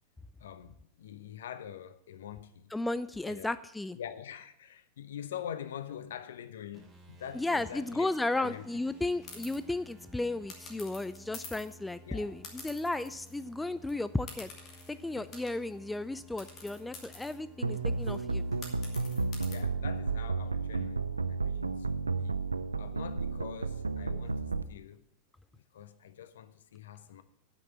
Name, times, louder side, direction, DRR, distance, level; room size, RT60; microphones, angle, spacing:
voice 1, 0.4-2.7 3.3-3.5 3.9-8.1 8.3-8.6 12.1-12.4 15.2-15.3 19.4-22.4 22.8-25.0 25.5-27.2, left 9 dB, 60° left, 0.7 m, -45 dB
voice 2, 2.7-4.0 7.3-14.5 14.9-18.4, left 2 dB, 5° left, 0.3 m, -34 dB
sound 1, 6.7-20.8, left 1 dB, 15° right, 2.5 m, -55 dB
sound 2, 9.2-9.6 10.5-11.8 12.4-13.5 13.8-13.9 14.3-15.8 16.4-19.5, left 4 dB, 30° left, 2.4 m, -48 dB
sound 3, 17.6-24.6, right 4 dB, 80° right, 0.4 m, -32 dB
9.8 x 6.0 x 8.5 m
figure-of-eight pair, 90°, 0 cm